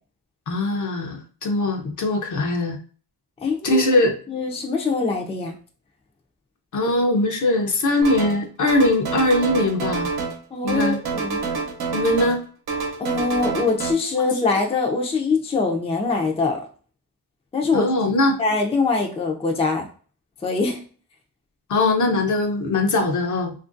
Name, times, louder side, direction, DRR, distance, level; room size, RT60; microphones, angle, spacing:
voice 1, 0.5-2.8 3.6-4.1 6.7-10.1 10.6-11.0 11.9-12.4 17.7-18.4 21.7-23.5, left 2 dB, 50° left, 3 dB, 0.7 m, -21 dB
voice 2, 3.4-3.8 4.3-5.5 10.5-11.4 13.0-16.6 17.5-17.9 18.4-19.8 20.4-20.8, left 4 dB, 15° left, 1 dB, 0.5 m, -23 dB
sound 1, 8.0-8.4 8.7-10.4 10.7-12.4 12.7-13.9, right 4 dB, 65° right, 0.9 m, -27 dB
2.9 x 2.5 x 2.6 m, 0.41 s
cardioid pair, 100°, 39 cm